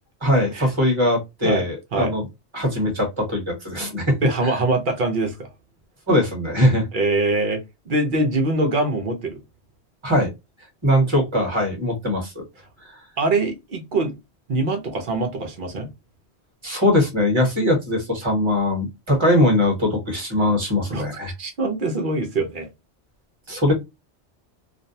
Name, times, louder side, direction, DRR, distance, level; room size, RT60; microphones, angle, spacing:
voice 1, 0.2-2.2 2.5-4.2 4.4-4.5 6.1-6.9 10.0-10.3 10.8-12.4 12.8-13.0 16.6-21.3 23.5-23.7, left 1 dB, 30° right, 1.0 m, -21 dB
voice 2, 4.2-5.5 6.9-9.4 13.2-14.2 14.5-15.9 20.9-21.0 21.4-22.7, right 2 dB, 55° right, 0.7 m, -23 dB
2.5 x 2.1 x 2.6 m
omnidirectional pair, 1.1 m